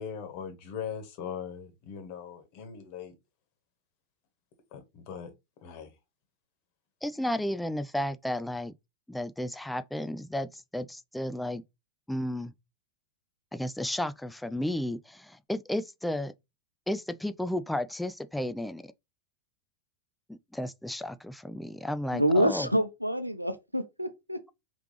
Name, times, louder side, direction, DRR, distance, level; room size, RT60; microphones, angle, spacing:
voice 1, 0.0-3.1 4.7-5.3 5.6-5.9, left 7 dB, 45° left, 1.5 m, -40 dB
voice 2, 7.0-8.7 9.1-11.6 12.1-12.5 13.5-16.3 16.9-18.9 20.3-22.7, left 1 dB, 5° left, 0.4 m, -33 dB
voice 3, 22.1-24.6, equal, 90° right, 0.7 m, -27 dB
4.9 x 3.1 x 3.1 m
figure-of-eight pair, 90°, 0 cm